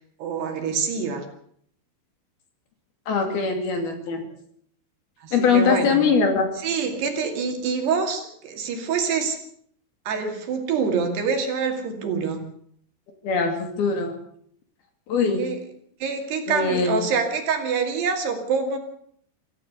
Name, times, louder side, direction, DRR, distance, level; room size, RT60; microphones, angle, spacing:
voice 1, 0.2-1.3 5.2-6.1 6.6-9.4 10.1-12.4 15.4-15.6 16.0-18.8, right 5 dB, 60° right, 4 dB, 4.3 m, -26 dB
voice 2, 3.1-4.2 5.3-6.5 13.2-14.1 15.1-15.4 16.5-17.1, left 5 dB, 55° left, 5 dB, 4.2 m, -22 dB
25.5 x 15.0 x 6.8 m, 0.64 s
omnidirectional pair, 5.7 m